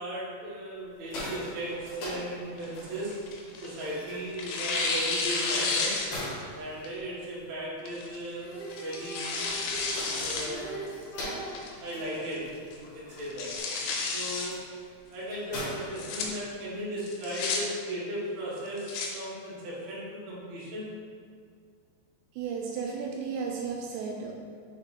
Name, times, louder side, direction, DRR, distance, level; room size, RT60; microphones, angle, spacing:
voice 1, 0.0-3.2 3.6-6.0 6.5-9.4 10.2-10.9 11.8-13.6 14.1-14.6 15.1-20.9, right 1 dB, 65° right, -7 dB, 1.8 m, -36 dB
sound 1, 0.8-16.8, left 1 dB, 60° left, 2.7 m, -44 dB
Tearing, 2.6-3.9 4.4-6.4 6.9-7.0 7.9-8.2 8.7-10.5 10.9-11.0 11.6-12.0 12.3-12.4 12.7-12.8 13.2-14.5 15.8-16.3 17.0-17.6 18.6-19.1, left 4 dB, 90° left, 3.1 m, -31 dB
Female singing, 8.3-11.6 13.6-13.7, right 2 dB, 75° left, 2.3 m, -41 dB
voice 2, 22.3-24.3, right 5 dB, 85° right, 0 dB, 2.6 m, -34 dB
6.4 x 3.6 x 4.1 m, 2.1 s
omnidirectional pair, 5.2 m